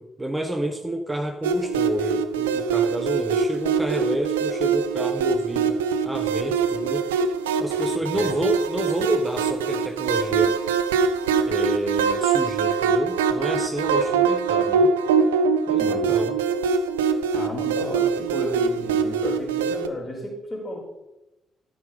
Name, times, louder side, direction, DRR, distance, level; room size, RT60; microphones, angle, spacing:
voice 1, 0.0-7.1 7.6-10.6 11.5-14.9 15.7-16.4, right 1 dB, 15° right, 6 dB, 0.8 m, -29 dB
sound 1, 1.4-19.9, right 5 dB, 75° right, 0.4 m, -23 dB
voice 2, 15.8-16.1 17.3-20.8, left 1 dB, 25° left, -2 dB, 4.1 m, -33 dB
13.0 x 5.6 x 5.2 m, 0.97 s
figure-of-eight pair, 40°, 0 cm